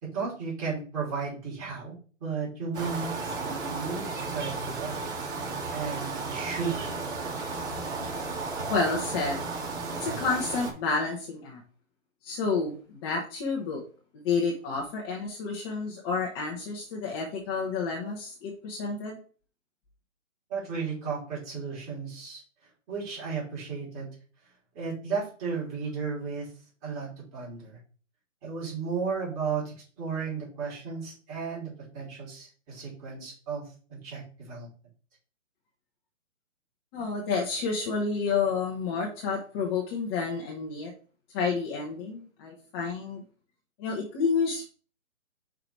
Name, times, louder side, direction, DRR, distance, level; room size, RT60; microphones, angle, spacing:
voice 1, 0.0-3.4 3.7-5.1 5.7-6.9 20.5-22.4 22.9-24.1 24.7-26.5 26.8-27.8 28.4-34.7, right 5 dB, 25° right, -5 dB, 3.7 m, -34 dB
sound 1, 2.7-10.7, right 3 dB, 60° right, 3.5 m, -34 dB
voice 2, 8.7-9.4 10.0-11.6 12.2-13.8 14.2-19.2 36.9-40.9 41.3-43.2 43.8-44.6, left 4 dB, 20° left, -2 dB, 0.9 m, -30 dB
5.7 x 4.9 x 4.6 m, 0.39 s
hypercardioid pair, 150°, 39 cm